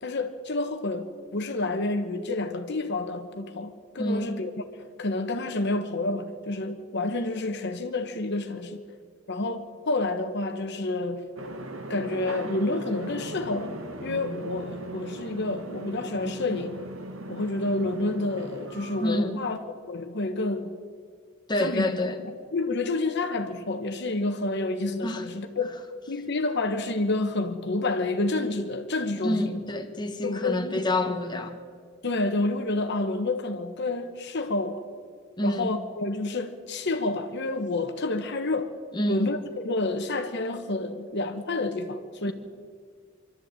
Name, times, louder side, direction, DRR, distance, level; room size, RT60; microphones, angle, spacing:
voice 1, 0.0-4.5 5.0-8.8 9.3-11.3 11.9-16.8 17.3-19.6 19.9-20.8 21.6-22.0 22.5-25.7 26.1-29.6 30.2-30.8 32.0-34.8 35.4-38.7 39.1-42.3, left 2 dB, 60° left, 1.2 m, -29 dB
voice 2, 4.0-4.5 19.0-19.4 21.5-22.2 25.0-25.2 29.2-31.6 35.4-35.7 38.9-39.4 42.3-42.4, left 1 dB, 20° left, 1.5 m, -28 dB
sound 1, 11.4-19.2, right 1 dB, 90° right, 2.1 m, -38 dB
25.0 x 12.5 x 8.9 m
head